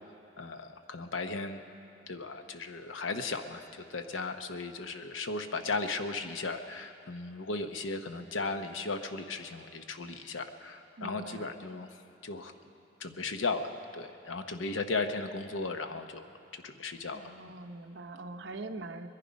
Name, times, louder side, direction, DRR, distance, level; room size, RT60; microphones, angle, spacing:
voice 1, 0.4-1.6 2.1-11.9 12.2-12.5 13.0-16.3 16.5-17.5, left 3 dB, 90° left, 8 dB, 0.8 m, -36 dB
voice 2, 11.0-11.5 17.1-19.1, right 2 dB, 65° right, 7 dB, 0.7 m, -43 dB
21.0 x 11.0 x 5.2 m, 2.6 s
head